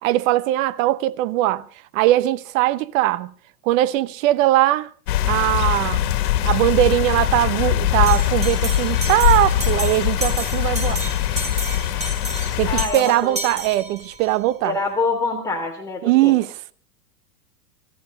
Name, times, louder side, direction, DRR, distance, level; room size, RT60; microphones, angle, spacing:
voice 1, 0.0-1.6 1.9-3.3 3.6-4.9 5.3-6.1 6.4-11.0 12.6-14.8 16.0-16.7, right 15 dB, 55° right, 1.0 m, -20 dB
sound 1, 5.1-12.9, left 12 dB, 65° left, 2.2 m, -21 dB
Bell, 8.1-14.3, right 1 dB, 15° right, 4.7 m, -32 dB
voice 2, 12.7-13.4 14.6-16.3, left 3 dB, 5° left, 3.2 m, -25 dB
24.0 x 14.0 x 3.9 m
hypercardioid pair, 115°, 48 cm